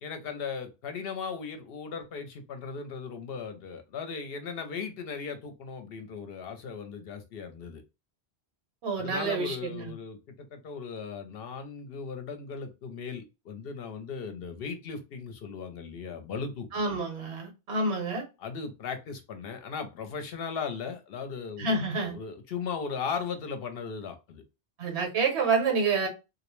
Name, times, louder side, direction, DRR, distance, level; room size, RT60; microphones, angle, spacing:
voice 1, 0.0-7.8 8.9-17.0 18.4-24.4, left 5 dB, 65° left, 0.7 m, -37 dB
voice 2, 8.8-9.9 16.7-18.2 21.6-22.1 24.8-26.1, right 4 dB, 80° right, 1.1 m, -28 dB
2.4 x 2.0 x 3.0 m
omnidirectional pair, 1.1 m